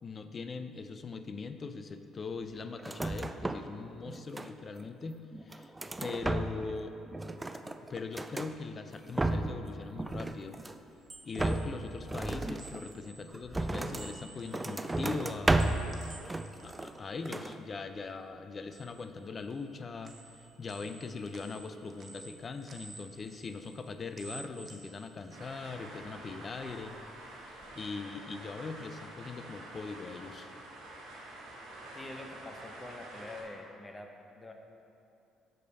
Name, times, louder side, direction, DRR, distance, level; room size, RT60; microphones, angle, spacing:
voice 1, 0.0-5.7 6.0-7.0 7.9-10.6 11.2-15.7 16.6-20.1 20.6-27.0 27.8-30.5, left 4 dB, 40° left, 9 dB, 0.5 m, -41 dB
sound 1, 2.8-3.8 4.0-4.8 5.3-6.8 7.1-8.5 8.9-9.7 10.0-10.9 11.4-14.1 14.5-15.9 16.3-17.0 17.3-17.6, right 2 dB, 15° right, 0.4 m, -33 dB
sound 2, 10.8-18.1 18.4-19.8 20.0-26.0 26.4-27.7, right 4 dB, 40° right, 0.8 m, -54 dB
sound 3, 25.3-33.4, right 1 dB, 80° right, 1.6 m, -48 dB
voice 2, 31.9-34.5, left 2 dB, 20° left, 3 dB, 0.9 m, -46 dB
6.6 x 5.1 x 5.3 m, 2.7 s
supercardioid pair, 70°, 0 cm